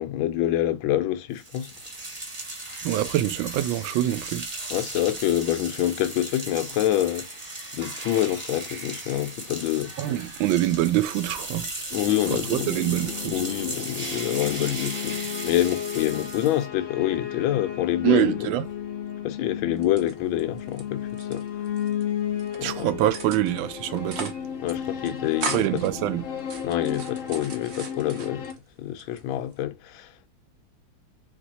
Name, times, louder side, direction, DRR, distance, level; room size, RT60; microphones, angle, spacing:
voice 1, 0.0-1.7 4.7-7.3 7.7-9.9 11.9-12.7 13.3-15.2 15.4-18.3 19.2-21.4 22.6-22.9 24.6-25.7 26.6-28.5 28.8-30.3, left 13 dB, 85° left, 1.4 m, -26 dB
sound 1, 1.4-16.6, right 2 dB, 25° right, 0.9 m, -36 dB
voice 2, 2.8-4.5 10.0-11.7 12.3-13.4 18.0-18.6 22.6-24.3 25.4-26.2, right 13 dB, 80° right, 1.3 m, -25 dB
sound 2, 11.9-28.5, left 9 dB, 65° left, 0.8 m, -34 dB
sound 3, 19.8-20.8 21.1-22.0 22.4-22.7 23.1-23.7 24.0-24.4 24.7-24.8 25.1-25.9 26.4-28.6 29.0-29.6, right 4 dB, 60° right, 0.7 m, -37 dB
3.3 x 3.3 x 4.1 m
omnidirectional pair, 2.2 m